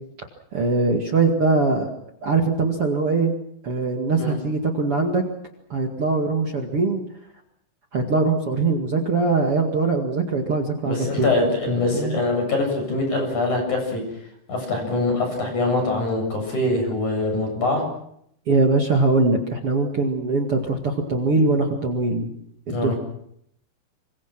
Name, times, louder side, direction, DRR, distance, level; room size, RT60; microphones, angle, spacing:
voice 1, 0.5-1.9 2.2-3.4 3.6-5.2 5.7-7.0 7.9-12.2 18.5-22.3 22.7-23.0, right 3 dB, 50° right, 3 dB, 1.7 m, -22 dB
voice 2, 10.8-14.0 14.5-17.8 22.7-22.9, left 2 dB, 35° left, 3 dB, 8.6 m, -23 dB
27.0 x 25.5 x 6.1 m, 0.71 s
omnidirectional pair, 5.9 m